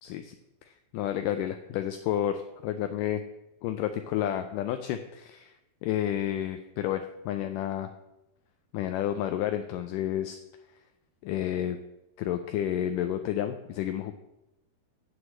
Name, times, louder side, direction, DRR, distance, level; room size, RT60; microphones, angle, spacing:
voice 1, 0.0-0.4 0.7-3.2 3.6-5.5 5.8-7.9 8.7-10.4 11.2-11.8 12.2-14.1, left 11 dB, 80° left, 8 dB, 1.9 m, -30 dB
8.2 x 7.9 x 7.2 m, 0.91 s
omnidirectional pair, 4.4 m